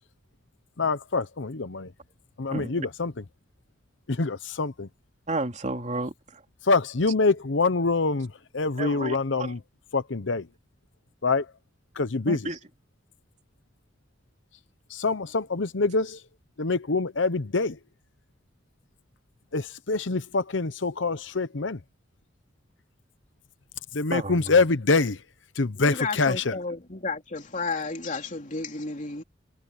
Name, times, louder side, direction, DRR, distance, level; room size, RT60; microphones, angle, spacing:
voice 1, 0.8-1.9 2.4-3.2 4.1-4.9 6.6-9.6 9.9-10.5 11.2-11.5 12.0-12.5 14.9-16.2 16.6-17.8 19.5-21.8 23.9-25.2 25.5-26.6, left 3 dB, 80° left, 0.9 m, -25 dB
voice 2, 2.5-2.9 5.3-6.4 8.8-9.5 12.3-12.6 24.1-24.4, right 2 dB, 40° right, 3.0 m, -32 dB
voice 3, 25.8-29.2, left 3 dB, 40° left, 3.3 m, -32 dB
head